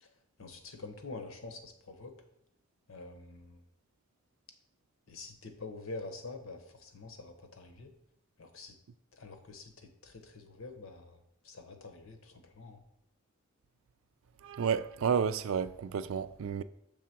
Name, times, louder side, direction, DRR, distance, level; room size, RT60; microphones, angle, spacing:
voice 1, 0.4-2.2 2.9-3.6 5.1-7.9 8.4-8.8 9.1-12.8, left 3 dB, 85° left, 1.0 m, -46 dB
voice 2, 14.4-16.6, right 6 dB, 80° right, 0.4 m, -31 dB
6.7 x 3.6 x 5.9 m
head